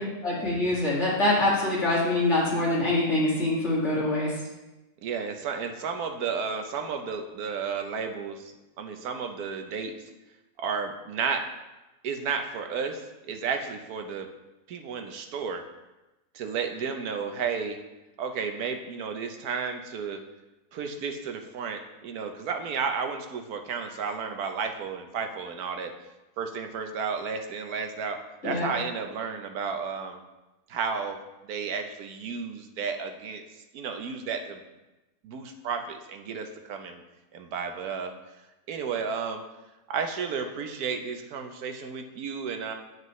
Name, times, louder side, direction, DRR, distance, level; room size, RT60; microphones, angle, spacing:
voice 1, 0.2-4.3 28.4-28.7, left 2 dB, 50° left, -6 dB, 2.5 m, -24 dB
voice 2, 5.0-8.5 8.8-9.9 10.6-11.5 12.0-13.0 13.3-14.3 14.7-15.6 16.3-17.8 18.2-20.2 20.7-25.9 26.4-30.2 30.7-31.2 31.5-33.4 33.7-34.6 35.2-37.0 37.3-38.1 38.7-39.4 39.9-42.7, right 5 dB, 80° right, 5 dB, 1.3 m, -32 dB
8.0 x 7.5 x 3.1 m, 1.0 s
omnidirectional pair, 1.6 m